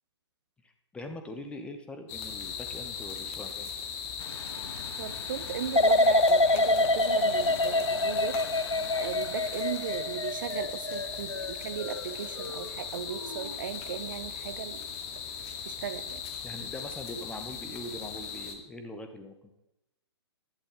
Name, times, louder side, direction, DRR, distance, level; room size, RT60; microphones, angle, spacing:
voice 1, 0.6-3.7 16.4-19.5, left 1 dB, 5° left, 6 dB, 0.9 m, -42 dB
sound 1, 2.1-18.6, left 7 dB, 30° left, 1.4 m, -38 dB
sound 2, 4.2-10.3, left 5 dB, 55° left, 1.4 m, -46 dB
voice 2, 5.0-14.9 15.6-16.2, right 9 dB, 45° right, 12 dB, 0.8 m, -37 dB
sound 3, 5.7-12.7 13.1-13.5, left 2 dB, 90° left, 0.8 m, -26 dB
14.5 x 11.0 x 3.9 m, 0.91 s
figure-of-eight pair, 125°, 15 cm